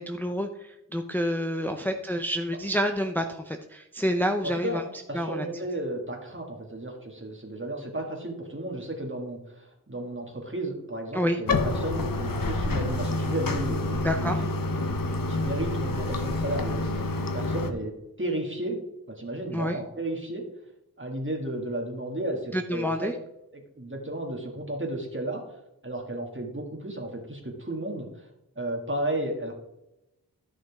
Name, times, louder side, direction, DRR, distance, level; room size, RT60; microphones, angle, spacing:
voice 1, 0.0-4.8 5.1-5.5 11.1-11.4 14.0-14.4 19.5-19.8 22.5-23.1, equal, 5° left, 4 dB, 0.6 m, -28 dB
voice 2, 4.4-14.5 15.3-17.0 17.3-18.8 19.1-20.5 21.0-23.1 23.5-25.4 25.8-28.3 28.6-29.5, right 1 dB, 35° right, 1 dB, 2.3 m, -33 dB
Bathtub (filling or washing), 11.5-17.7, left 2 dB, 65° left, 1.0 m, -28 dB
13.5 x 6.2 x 3.6 m, 0.90 s
wide cardioid pair, 55°, 36 cm